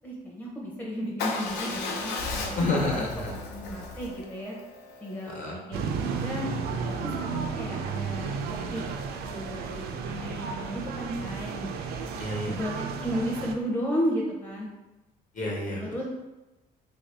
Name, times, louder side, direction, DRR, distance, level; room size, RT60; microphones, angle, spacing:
voice 1, 0.0-3.1 3.5-4.6 5.0-6.5 6.8-8.8 9.2-11.7 12.5-14.7 15.9-16.0, equal, 10° left, -3 dB, 0.6 m, -33 dB
Motorcycle / Engine starting / Idling, 1.2-5.3, left 3 dB, 80° left, 0.6 m, -35 dB
voice 2, 2.5-3.3 5.2-5.6 12.2-12.6 15.3-16.0, left 2 dB, 50° left, -2 dB, 1.1 m, -30 dB
sound 1, 5.7-13.5, right 5 dB, 70° right, 0.4 m, -33 dB
3.2 x 2.6 x 3.3 m, 1.0 s
cardioid pair, 110°, 17 cm